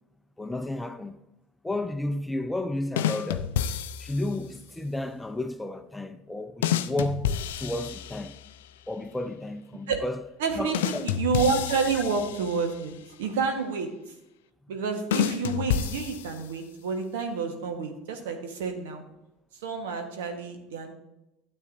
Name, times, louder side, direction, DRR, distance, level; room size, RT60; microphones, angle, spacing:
voice 1, 0.4-1.2 1.6-3.5 4.0-8.4 8.9-10.2 10.6-11.0, left 2 dB, 10° left, 0.6 m, -32 dB
sound 1, 3.0-4.4 6.6-8.6 10.7-12.9 15.1-16.7, left 9 dB, 75° left, 0.4 m, -30 dB
voice 2, 10.4-14.1 14.7-19.0 19.5-20.9, right 5 dB, 70° right, 1.3 m, -29 dB
12.0 x 7.9 x 2.6 m
hypercardioid pair, 70°, 0 cm